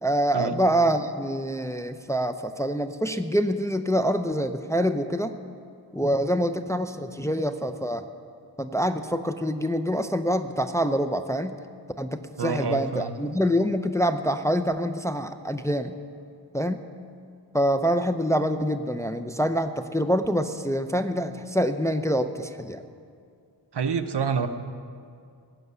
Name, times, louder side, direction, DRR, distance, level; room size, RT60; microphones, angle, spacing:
voice 1, 0.0-5.4 5.9-8.1 8.6-11.6 12.0-16.0 16.5-16.8 17.5-22.8, equal, 5° left, 8 dB, 0.5 m, -26 dB
voice 2, 12.4-13.1 23.7-24.5, right 5 dB, 65° right, 9 dB, 0.8 m, -27 dB
16.5 x 6.8 x 9.5 m, 2.3 s
wide cardioid pair, 85°, 43 cm